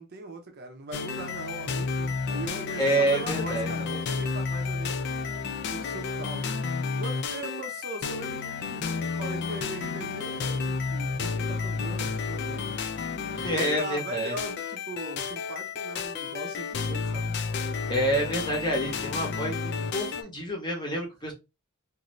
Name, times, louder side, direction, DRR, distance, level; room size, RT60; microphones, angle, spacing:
voice 1, 0.0-12.7 13.5-17.3, right 2 dB, 45° right, 0.6 m, -40 dB
sound 1, 0.9-20.2, left 5 dB, 50° left, 0.3 m, -31 dB
voice 2, 2.8-3.7 13.3-14.3 17.9-21.3, right 1 dB, 20° left, 0.8 m, -28 dB
2.6 x 2.6 x 3.0 m
head